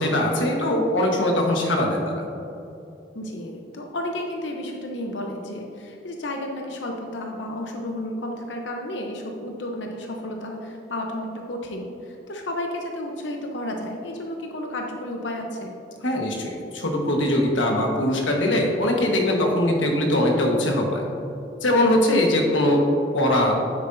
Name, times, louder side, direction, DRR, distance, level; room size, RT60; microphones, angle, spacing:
voice 1, 0.0-2.2 16.0-21.0 21.6-22.8 23.1-23.6, left 1 dB, 90° left, 1 dB, 1.3 m, -21 dB
voice 2, 3.1-15.7, left 1 dB, 75° left, 1 dB, 0.8 m, -32 dB
9.6 x 8.0 x 2.6 m, 2.8 s
head